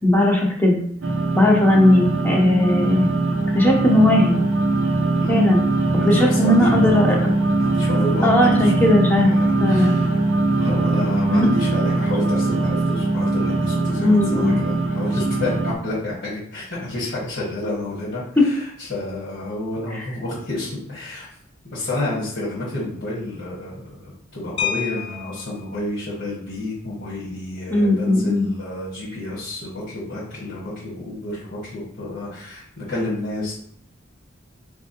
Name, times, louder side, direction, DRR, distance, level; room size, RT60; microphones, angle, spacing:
voice 1, 0.0-0.8 1.3-3.1 3.5-4.4 5.3-5.6 6.0-7.1 8.2-9.9 11.3-11.5 14.0-14.6 18.4-18.5 19.9-20.0 27.7-28.5, left 1 dB, 10° left, -1 dB, 0.8 m, -17 dB
sound 1, 1.0-15.7, right 2 dB, 75° right, 0.5 m, -21 dB
voice 2, 5.0-5.5 5.9-7.3 7.6-8.3 8.6-8.8 9.1-10.2 10.5-21.3 21.7-33.5, left 2 dB, 60° left, -10 dB, 1.8 m, -30 dB
sound 2, 24.6-25.7 27.1-27.2 27.6-27.8 28.1-28.4, left 8 dB, 25° left, 0.4 m, -29 dB
4.3 x 3.6 x 2.8 m, 0.66 s
head